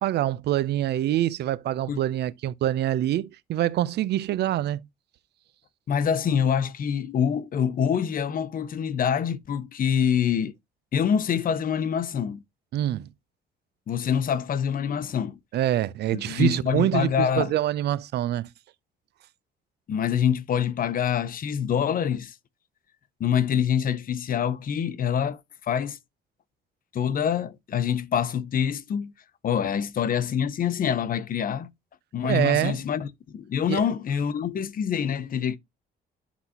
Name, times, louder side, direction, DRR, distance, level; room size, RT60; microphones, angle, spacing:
voice 1, 0.0-4.8 12.7-13.1 15.5-18.5 32.2-32.8 33.7-33.8, right 13 dB, 70° right, 0.6 m, -25 dB
voice 2, 5.9-10.5 10.9-12.4 13.9-15.4 16.1-17.5 19.9-22.3 23.2-26.0 26.9-29.1 29.4-31.7 32.1-33.1 33.3-35.6, left 8 dB, 50° left, 0.8 m, -25 dB
11.0 x 4.0 x 2.8 m
cardioid pair, 100°, 18 cm